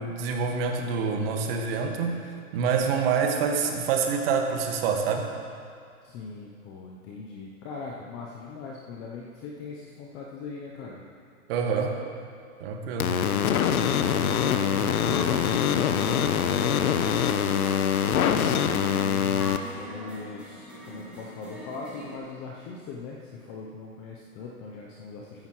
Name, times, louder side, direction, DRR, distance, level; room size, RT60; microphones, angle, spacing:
voice 1, 0.0-5.3 11.5-12.0 12.6-13.2, right 5 dB, 40° right, 3 dB, 1.5 m, -27 dB
voice 2, 6.0-11.0 13.8-25.5, left 4 dB, 15° left, -2 dB, 0.4 m, -40 dB
sound 1, 13.0-19.6, left 8 dB, 75° left, 0.9 m, -24 dB
sound 2, 14.7-22.2, equal, 5° right, 2.0 m, -42 dB
14.0 x 12.0 x 3.0 m, 2.3 s
hypercardioid pair, 130°, 44 cm